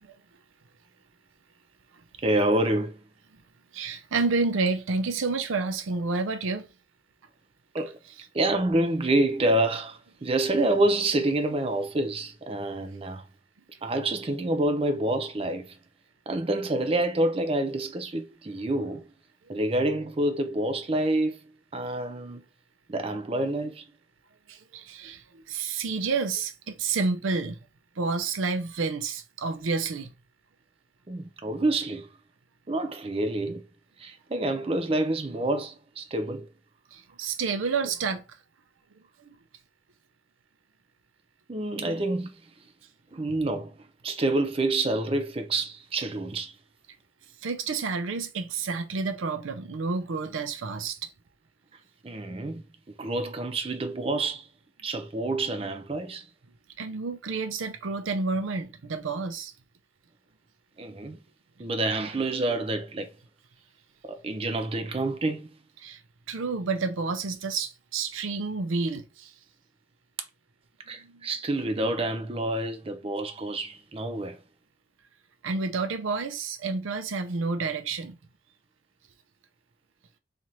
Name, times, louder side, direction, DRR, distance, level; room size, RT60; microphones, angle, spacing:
voice 1, 2.2-3.0 7.7-8.0 8.3-13.3 13.8-15.8 16.3-19.1 19.5-21.4 21.7-22.4 22.9-23.8 31.1-32.1 32.7-33.6 34.0-36.5 41.5-42.3 43.1-46.5 52.0-52.7 53.0-54.5 54.8-56.3 60.8-61.2 61.6-63.1 64.0-65.5 70.9-74.4, right 2 dB, 30° right, 0.5 m, -27 dB
voice 2, 3.7-6.6 24.5-27.6 28.0-30.1 36.9-38.2 47.4-51.0 56.8-59.5 65.8-66.0 66.3-69.3 71.0-71.1 75.4-78.2, right 4 dB, 75° right, 0.5 m, -29 dB
3.0 x 2.5 x 4.1 m
head